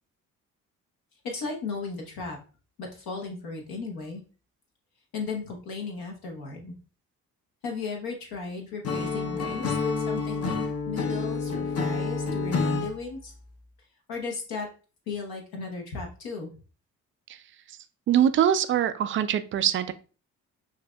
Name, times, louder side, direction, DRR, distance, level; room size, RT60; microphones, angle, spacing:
voice 1, 1.2-2.4 2.8-4.2 5.1-6.7 7.6-10.6 10.9-13.3 14.1-14.7 15.1-16.5, left 4 dB, 55° left, 1 dB, 1.1 m, -35 dB
Acoustic guitar / Strum, 8.8-12.9, left 4 dB, 35° left, 0.8 m, -28 dB
voice 2, 18.1-19.9, right 10 dB, 30° right, 12 dB, 0.4 m, -23 dB
6.0 x 2.6 x 2.3 m, 0.36 s
figure-of-eight pair, 45°, 43 cm